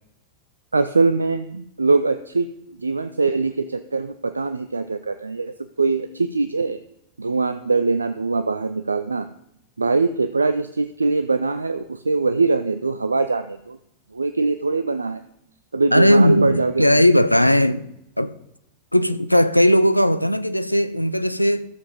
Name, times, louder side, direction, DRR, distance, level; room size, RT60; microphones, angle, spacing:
voice 1, 0.7-2.5 2.8-6.8 7.2-9.3 9.8-13.8 14.1-15.2 15.7-17.0, right 3 dB, 80° right, 0.4 m, -22 dB
voice 2, 15.9-17.9 18.2-18.3 18.9-21.7, equal, 90° left, 0.5 m, -17 dB
13.0 x 7.0 x 5.2 m
figure-of-eight pair, 90°, 0 cm